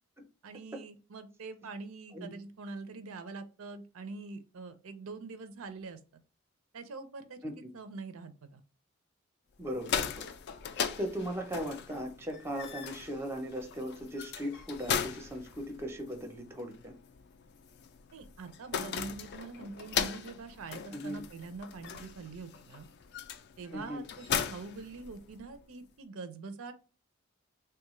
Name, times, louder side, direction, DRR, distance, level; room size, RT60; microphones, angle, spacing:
voice 1, 0.4-6.0 6.7-8.6 18.1-22.9 23.6-26.7, right 4 dB, 75° right, 9 dB, 0.5 m, -44 dB
sound 1, 9.6-25.6, left 7 dB, 50° left, 0.3 m, -38 dB
voice 2, 9.6-10.3 11.0-16.9 20.9-21.2 23.7-24.0, equal, 10° right, 4 dB, 0.5 m, -38 dB
3.3 x 2.3 x 3.0 m, 0.33 s
head